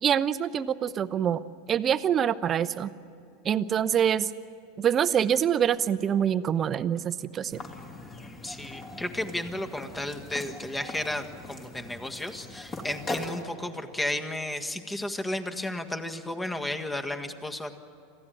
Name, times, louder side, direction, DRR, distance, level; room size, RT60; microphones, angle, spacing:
voice 1, 0.0-1.4 1.7-2.9 3.4-4.3 4.8-7.6, right 9 dB, 35° right, 14 dB, 0.8 m, -25 dB
sound 1, 7.5-13.4, left 2 dB, 30° left, 3.2 m, -40 dB
voice 2, 8.4-17.7, left 1 dB, 10° left, 7 dB, 1.7 m, -33 dB
27.0 x 15.0 x 9.1 m, 2.7 s
hypercardioid pair, 85°, 0 cm